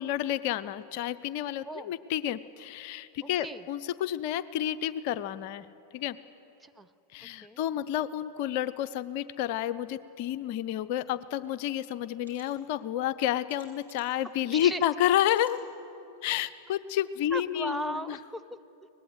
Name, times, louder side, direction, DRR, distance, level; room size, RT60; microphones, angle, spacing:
voice 1, 0.0-5.7 5.9-6.2 7.1-15.6 16.2-18.2, left 11 dB, 45° left, 14 dB, 0.7 m, -30 dB
voice 2, 3.2-3.7 6.6-6.9 7.4-7.6 14.5-14.8 17.3-18.9, right 1 dB, 5° right, 9 dB, 0.6 m, -38 dB
sound 1, 11.4-11.5 12.2-12.5 13.5-14.2 15.1-15.6 16.2-16.3 16.6-16.7, right 4 dB, 70° right, 6.1 m, -58 dB
24.0 x 19.5 x 9.6 m, 2.8 s
figure-of-eight pair, 90°, 0 cm